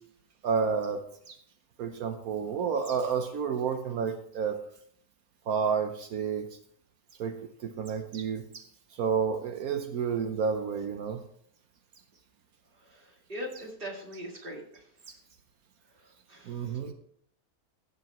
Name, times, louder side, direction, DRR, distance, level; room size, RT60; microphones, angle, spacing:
voice 1, 0.4-1.4 1.8-4.6 5.5-6.5 7.2-8.7 8.9-11.2 16.4-16.9, right 6 dB, 75° right, 6 dB, 1.3 m, -30 dB
voice 2, 13.3-14.6 16.3-16.4, equal, 35° right, 0 dB, 2.2 m, -39 dB
16.0 x 7.0 x 3.0 m, 0.66 s
omnidirectional pair, 1.6 m